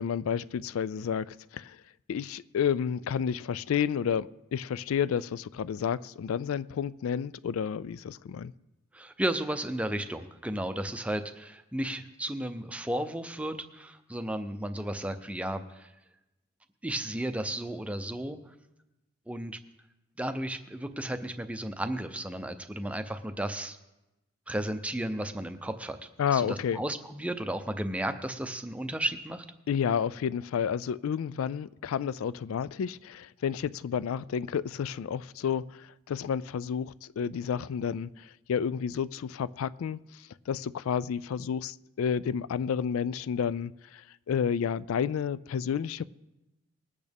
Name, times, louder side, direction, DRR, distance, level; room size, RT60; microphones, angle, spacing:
voice 1, 0.0-1.8 2.1-8.5 26.2-26.8 29.7-46.0, left 7 dB, 80° left, 0.3 m, -31 dB
voice 2, 8.9-15.9 16.8-18.4 19.3-19.6 20.2-23.8 24.5-26.0 26.3-29.4, right 1 dB, 5° right, 0.5 m, -33 dB
20.0 x 8.5 x 3.5 m
head